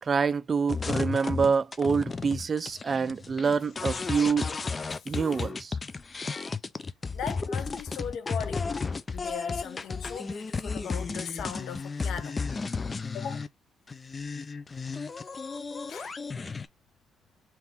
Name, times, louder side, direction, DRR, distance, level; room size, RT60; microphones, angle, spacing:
voice 1, 0.0-4.6 5.1-5.8, right 5 dB, 40° right, 0.4 m, -26 dB
sound 1, 0.7-13.5 13.9-16.7, left 4 dB, 30° left, 0.4 m, -33 dB
voice 2, 7.1-12.4 13.1-13.4 15.9-16.2, left 8 dB, 75° left, 0.8 m, -39 dB
3.5 x 3.0 x 4.3 m
cardioid pair, 90°, 0 cm